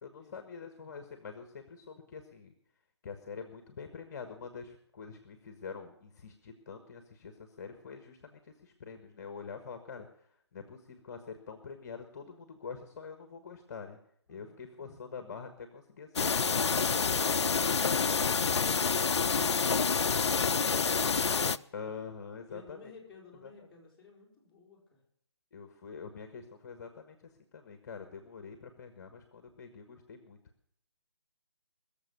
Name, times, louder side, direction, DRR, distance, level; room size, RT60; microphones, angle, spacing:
voice 1, 0.0-2.5 3.0-14.0 14.3-16.5 21.7-22.9 23.4-23.7 25.5-30.4, left 5 dB, 40° left, 7 dB, 1.4 m, -46 dB
voice 2, 14.3-15.2 22.5-25.0, left 4 dB, 5° left, -7 dB, 4.2 m, -55 dB
sound 1, 16.2-21.6, left 5 dB, 75° left, 0.6 m, -28 dB
21.5 x 7.3 x 6.9 m, 0.70 s
figure-of-eight pair, 155°, 14 cm